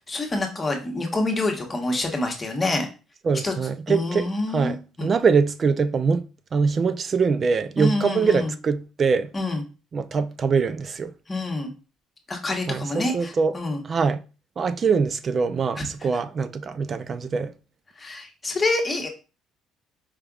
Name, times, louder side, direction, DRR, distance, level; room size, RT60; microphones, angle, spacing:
voice 1, 0.1-2.9 3.4-3.5 3.9-5.1 7.8-8.5 9.3-9.6 11.3-11.7 12.3-13.8 15.8-15.9 17.9-19.1, left 2 dB, 25° left, 1.2 m, -27 dB
voice 2, 3.2-6.2 6.5-9.3 9.9-11.1 12.7-13.6 13.8-14.2 14.6-17.5, right 5 dB, 40° right, 0.4 m, -23 dB
4.8 x 3.3 x 2.4 m
supercardioid pair, 85°, 0 cm